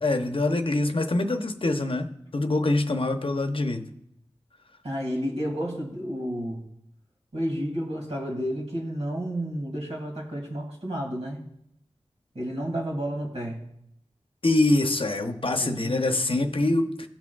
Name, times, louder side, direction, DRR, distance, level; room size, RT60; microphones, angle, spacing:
voice 1, 0.0-3.9 14.4-17.1, left 2 dB, 55° left, 7 dB, 0.7 m, -24 dB
voice 2, 4.8-6.6 7.3-11.4 12.3-13.6 15.6-16.2, equal, 85° right, -1 dB, 2.2 m, -31 dB
17.0 x 6.0 x 2.3 m, 0.75 s
wide cardioid pair, 65°, 11 cm